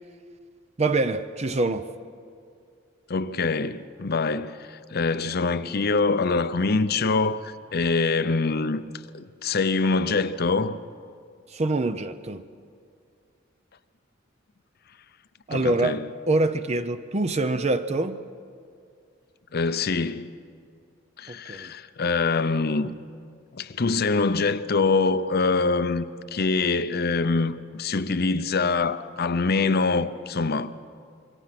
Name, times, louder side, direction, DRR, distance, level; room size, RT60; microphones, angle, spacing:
voice 1, 0.8-1.9 11.5-12.4 15.5-16.0 16.3-18.2 21.3-21.7, right 2 dB, 35° right, 0.6 m, -25 dB
voice 2, 3.1-8.8 9.1-10.8 15.5-16.0 19.5-20.3 21.2-22.9 23.5-26.1 26.3-30.7, left 4 dB, 50° left, 0.7 m, -24 dB
26.5 x 23.0 x 6.0 m
head